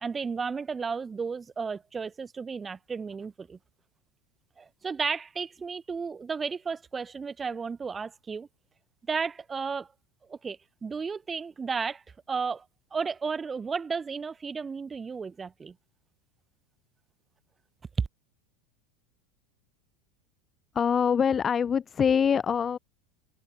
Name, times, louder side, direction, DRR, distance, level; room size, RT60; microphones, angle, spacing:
voice 1, 0.0-3.6 4.6-8.5 9.1-9.9 10.3-12.6 12.9-15.7 18.0-18.1, right 5 dB, 20° right, 0.7 m, -33 dB
voice 2, 20.7-22.8, left 7 dB, 25° left, 0.5 m, -24 dB
open air
figure-of-eight pair, 80°, 0 cm